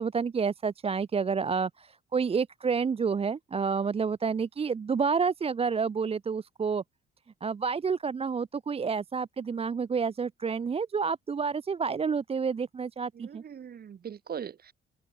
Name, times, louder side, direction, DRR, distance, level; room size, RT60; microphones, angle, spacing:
voice 1, 0.0-6.8 7.4-13.4, right 5 dB, 30° right, 0.6 m, -29 dB
voice 2, 13.1-14.7, right 8 dB, 50° right, 2.2 m, -40 dB
open air
cardioid pair, 90°, 20 cm